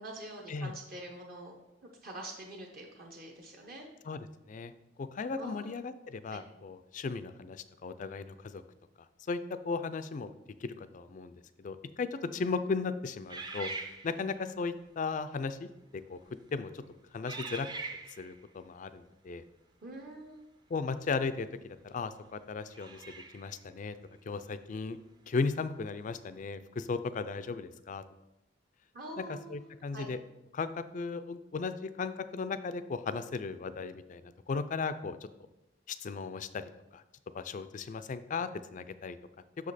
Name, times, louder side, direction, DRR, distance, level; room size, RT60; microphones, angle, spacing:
voice 1, 0.0-1.6 2.0-3.9 5.4-5.8 6.3-6.4 12.2-12.4 19.8-20.4 28.9-30.1, right 1 dB, 50° right, 0 dB, 0.8 m, -45 dB
voice 2, 4.1-4.7 5.0-8.6 9.3-9.4 9.6-10.3 10.6-13.7 14.0-15.7 16.1-16.2 16.5-16.8 17.1-17.7 18.2-19.4 20.7-23.0 23.3-24.0 24.3-25.0 25.3-28.0 29.5-30.2 30.5-35.2 35.9-36.6 36.9-37.0 37.3-39.2, left 4 dB, 40° left, 12 dB, 0.4 m, -36 dB
sound 1, 13.3-14.5 15.3-15.5 16.2-16.5 17.3-18.4 21.1-21.2 22.7-23.6, right 3 dB, 20° right, 0.5 m, -42 dB
6.5 x 5.0 x 4.1 m, 0.92 s
head